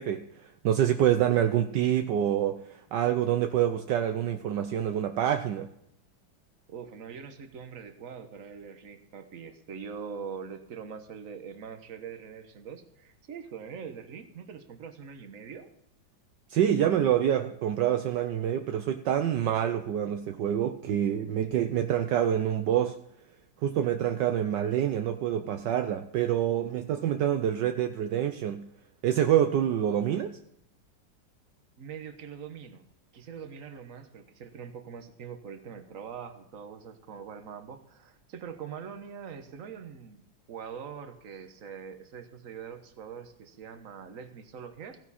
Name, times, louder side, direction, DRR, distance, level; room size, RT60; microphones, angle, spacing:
voice 1, 0.0-2.6 2.9-5.7 16.5-23.0 23.6-28.6 29.0-30.3, right 10 dB, 70° right, 7 dB, 1.3 m, -26 dB
voice 2, 6.7-15.7 31.8-32.8 33.1-45.0, right 6 dB, 50° right, 7 dB, 1.5 m, -43 dB
15.5 x 11.0 x 4.2 m, 0.76 s
omnidirectional pair, 2.0 m